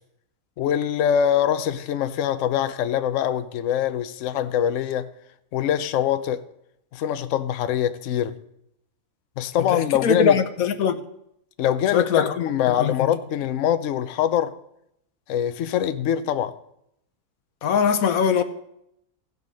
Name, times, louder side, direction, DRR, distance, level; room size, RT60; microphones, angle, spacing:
voice 1, 0.6-5.1 5.5-6.4 6.9-8.4 9.4-10.4 11.6-14.6 15.3-16.5, left 10 dB, 70° left, 0.9 m, -23 dB
voice 2, 9.7-11.0 11.9-12.3 12.7-13.1 17.6-18.4, left 7 dB, 90° left, 1.3 m, -21 dB
16.0 x 5.4 x 5.2 m
omnidirectional pair, 1.4 m